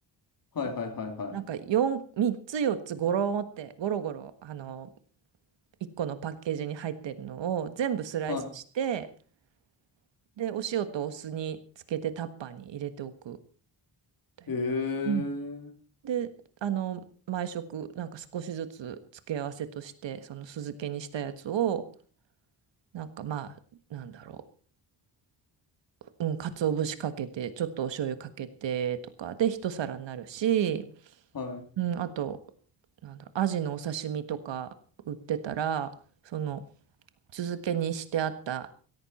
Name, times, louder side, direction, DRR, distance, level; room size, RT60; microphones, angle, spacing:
voice 1, 0.5-1.4 8.3-8.5 14.5-15.7 31.3-31.7, left 4 dB, 50° left, 3.1 m, -32 dB
voice 2, 1.3-4.9 6.0-9.1 10.4-11.6 11.9-13.4 14.4-14.6 15.0-15.3 16.0-16.3 16.6-17.0 17.3-19.0 19.3-21.9 22.9-23.5 23.9-24.4 26.2-30.8 31.8-32.4 33.0-34.7 35.1-35.9 36.2-36.6 37.3-38.7, right 9 dB, 85° right, 1.6 m, -31 dB
17.0 x 14.5 x 4.3 m
wide cardioid pair, 135°, 43 cm